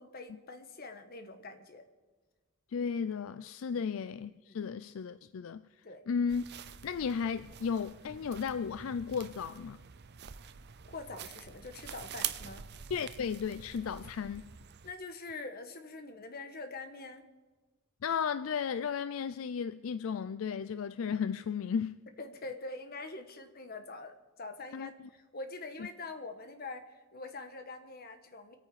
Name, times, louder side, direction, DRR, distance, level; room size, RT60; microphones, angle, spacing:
voice 1, 0.0-1.8 3.7-3.8 4.5-4.6 5.8-6.0 10.9-12.7 14.8-17.2 22.2-28.6, left 3 dB, 50° left, 1.3 m, -44 dB
voice 2, 2.7-5.6 6.1-6.5 6.8-9.8 12.9-14.5 18.0-22.0 24.7-25.1 25.8-25.9, left 6 dB, 70° left, 0.4 m, -34 dB
sound 1, 6.3-14.9, right 9 dB, 55° right, 0.6 m, -45 dB
25.5 x 9.0 x 4.8 m
head